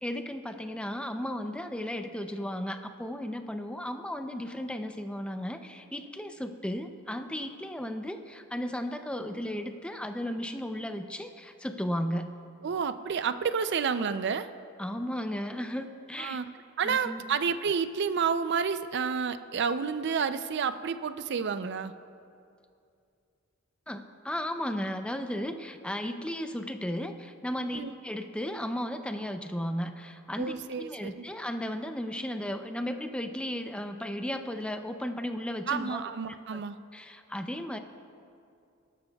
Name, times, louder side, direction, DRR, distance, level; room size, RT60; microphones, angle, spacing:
voice 1, 0.0-12.3 14.8-16.4 16.8-17.2 23.9-36.0 36.5-36.6 36.9-37.8, equal, 5° left, 7 dB, 0.5 m, -35 dB
voice 2, 12.6-14.5 16.2-16.5 16.8-21.9 27.7-27.9 30.4-31.2 35.7-36.8, right 6 dB, 55° right, 12 dB, 0.4 m, -30 dB
20.5 x 12.0 x 2.3 m, 2.5 s
head